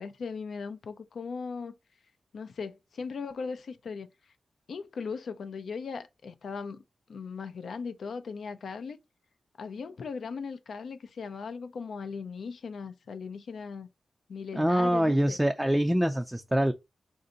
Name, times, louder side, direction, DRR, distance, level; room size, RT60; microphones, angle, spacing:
voice 1, 0.0-1.7 2.3-4.1 4.7-6.8 7.1-9.0 9.6-13.9 14.3-15.4, left 5 dB, 80° left, 0.5 m, -38 dB
voice 2, 14.5-16.7, equal, 5° right, 0.4 m, -25 dB
4.3 x 2.7 x 3.7 m
wide cardioid pair, 110°, 0 cm